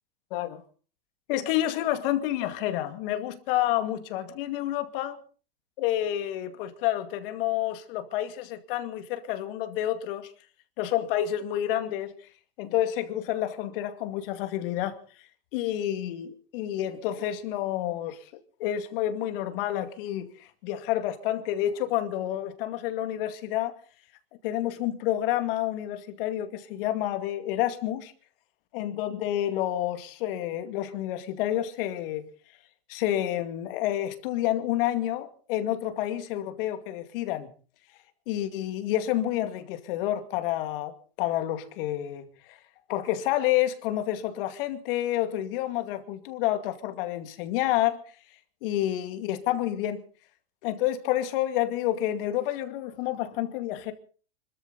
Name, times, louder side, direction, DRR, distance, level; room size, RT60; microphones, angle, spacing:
voice 1, 0.3-0.6 1.3-5.2 5.8-10.3 10.8-12.1 12.6-15.0 15.5-18.3 18.6-23.7 24.4-28.1 28.7-32.3 32.9-37.5 38.3-42.2 42.5-42.6 42.9-48.0 48.6-50.0 50.6-53.9, left 13 dB, 60° left, 2.3 m, -29 dB
25.5 x 13.5 x 4.1 m
hypercardioid pair, 125°, 32 cm